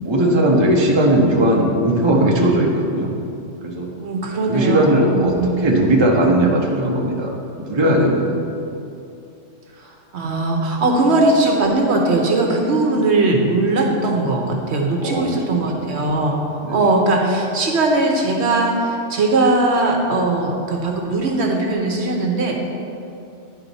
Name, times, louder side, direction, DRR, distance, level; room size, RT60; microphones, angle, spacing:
voice 1, 0.0-3.1 3.6-3.9 4.5-7.3 7.6-8.4 15.0-15.6 16.6-16.8, right 1 dB, 25° right, -1 dB, 0.8 m, -18 dB
voice 2, 4.0-5.5 9.8-16.4 16.7-22.5, right 2 dB, 65° right, 1 dB, 1.1 m, -19 dB
10.5 x 4.6 x 4.0 m, 2.6 s
omnidirectional pair, 1.3 m